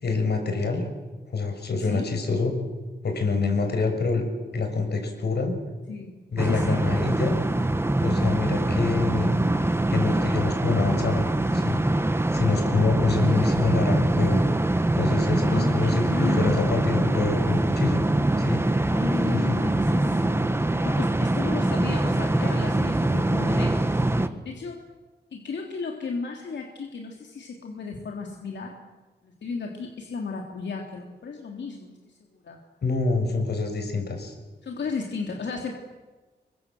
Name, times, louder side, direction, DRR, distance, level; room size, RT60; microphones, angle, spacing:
voice 1, 0.0-0.8 1.3-2.6 3.0-4.2 4.5-5.5 6.3-7.4 8.0-9.4 9.9-11.2 11.5-11.8 12.3-14.4 15.0-18.0 18.4-18.9 19.3-19.6 32.8-34.3, left 4 dB, 70° left, 5 dB, 6.7 m, -26 dB
voice 2, 1.8-2.1 5.9-6.1 6.4-6.8 13.2-13.4 15.4-16.9 18.9-20.4 20.8-24.8 25.3-28.8 29.2-32.1 32.4-32.6 34.6-35.7, left 4 dB, 90° left, 2 dB, 3.3 m, -34 dB
sound 1, 6.4-24.3, right 1 dB, 15° right, 1.4 m, -23 dB
27.5 x 24.5 x 7.9 m, 1.3 s
wide cardioid pair, 160°, 18 cm